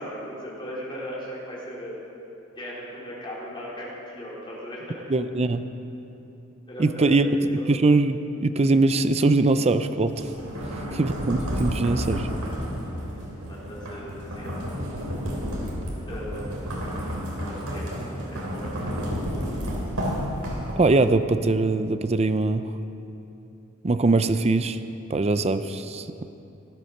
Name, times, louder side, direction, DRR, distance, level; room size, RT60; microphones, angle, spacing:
voice 1, 0.0-2.0 2.6-5.0 6.7-7.3 7.6-7.7 10.6-11.0 13.4-14.7 16.1-16.6 17.5-18.8, equal, 25° left, -6 dB, 4.3 m, -38 dB
voice 2, 5.1-5.6 6.8-10.3 10.9-12.3 20.8-22.6 23.8-24.8 25.1-26.1, right 3 dB, 30° right, 11 dB, 0.5 m, -22 dB
sound 1, 10.1-21.1, equal, 80° right, 3.4 m, -31 dB
15.0 x 13.0 x 6.6 m, 2.9 s
head